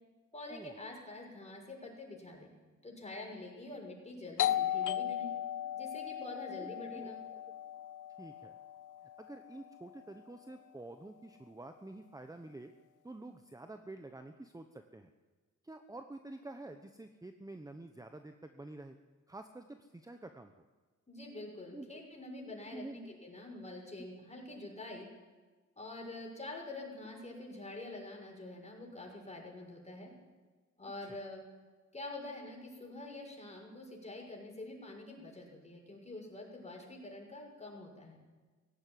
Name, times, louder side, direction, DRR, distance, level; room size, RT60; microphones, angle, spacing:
voice 1, 0.3-2.5 2.8-5.3 5.7-7.2 21.1-25.1 25.8-30.1 30.8-31.4 31.9-38.2, left 2 dB, 20° left, 0 dB, 6.6 m, -46 dB
Doorbell, 4.4-9.8, left 11 dB, 80° left, 0.8 m, -37 dB
voice 2, 8.2-8.6 9.2-12.7 13.0-15.1 15.6-19.0 19.3-20.6 21.7-22.0 22.7-23.0 31.1-31.2, right 2 dB, 10° right, 7 dB, 1.0 m, -48 dB
17.0 x 17.0 x 9.4 m, 1.4 s
cardioid pair, 95°, 30 cm